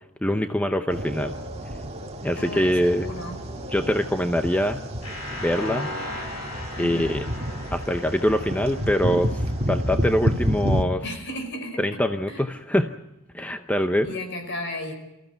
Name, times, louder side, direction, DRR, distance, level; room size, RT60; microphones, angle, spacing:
voice 1, 0.2-1.3 2.2-3.1 3.7-4.8 5.4-5.9 6.8-7.2 7.7-11.0 11.8-12.9 13.3-14.1, equal, 5° left, 7 dB, 0.7 m, -24 dB
sound 1, 0.9-10.8, equal, 30° right, 1.6 m, -29 dB
voice 2, 2.4-3.4 6.8-7.3 11.0-12.0 12.3-12.4 14.0-14.9, left 1 dB, 55° left, 5 dB, 5.3 m, -34 dB
sound 2, 5.0-9.9, left 2 dB, 80° left, 7.9 m, -37 dB
24.5 x 15.0 x 9.4 m, 0.92 s
head